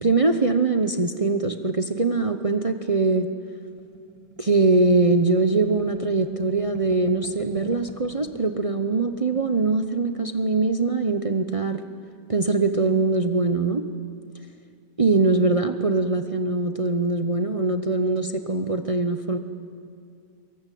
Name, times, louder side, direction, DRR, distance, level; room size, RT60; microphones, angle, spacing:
voice 1, 0.0-3.3 4.4-11.8 12.3-13.8 15.0-19.4, right 3 dB, 35° right, 7 dB, 0.5 m, -22 dB
sound 1, 3.8-8.3 8.7-8.8 9.0-9.6, right 4 dB, 75° right, 2.3 m, -44 dB
23.5 x 22.0 x 9.3 m, 2.4 s
omnidirectional pair, 1.8 m